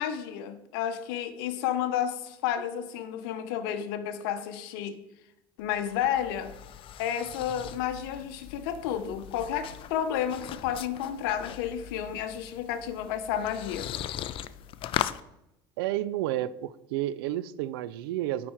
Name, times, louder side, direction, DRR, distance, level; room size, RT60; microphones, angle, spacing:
voice 1, 0.0-5.0 5.6-6.5 7.0-13.9, left 9 dB, 80° left, 10 dB, 0.7 m, -31 dB
sound 1, 5.6-15.2, left 11 dB, 50° left, 0.4 m, -39 dB
voice 2, 15.8-18.5, right 14 dB, 85° right, 16 dB, 0.4 m, -31 dB
8.7 x 4.3 x 4.4 m, 0.86 s
supercardioid pair, 95°, 12 cm